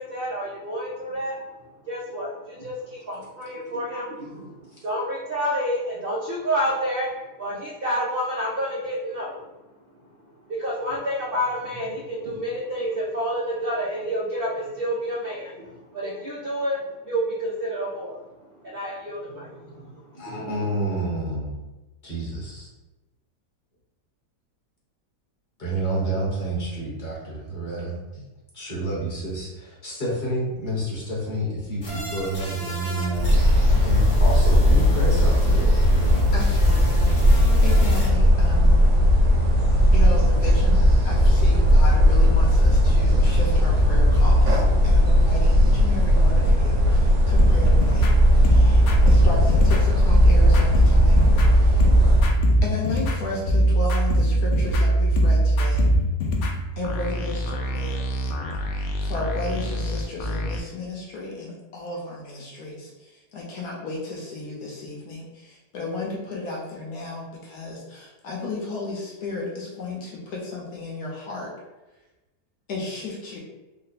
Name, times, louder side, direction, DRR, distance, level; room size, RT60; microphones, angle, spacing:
voice 1, 0.0-1.4 1.8-9.5 10.0-10.1 10.5-18.2 18.6-20.8, equal, 75° right, -5 dB, 0.5 m, -29 dB
voice 2, 20.2-21.5 22.0-22.7 25.6-28.2 28.5-33.3 33.8-35.7 37.5-37.6, right 1 dB, 30° left, -5 dB, 1.0 m, -29 dB
sound 1, 31.8-38.1, left 2 dB, 50° left, 1.6 m, -36 dB
sound 2, 33.1-52.3, equal, 55° right, 0.9 m, -17 dB
voice 3, 36.3-38.8 39.9-48.1 48.4-51.2 51.5-51.8 52.6-55.9 56.8-58.0 58.7-71.5 72.7-73.4, left 2 dB, 70° left, -3 dB, 1.3 m, -34 dB
sound 3, 47.3-60.6, right 1 dB, 85° left, 0.6 m, -21 dB
3.6 x 2.1 x 4.0 m, 1.1 s
omnidirectional pair, 1.8 m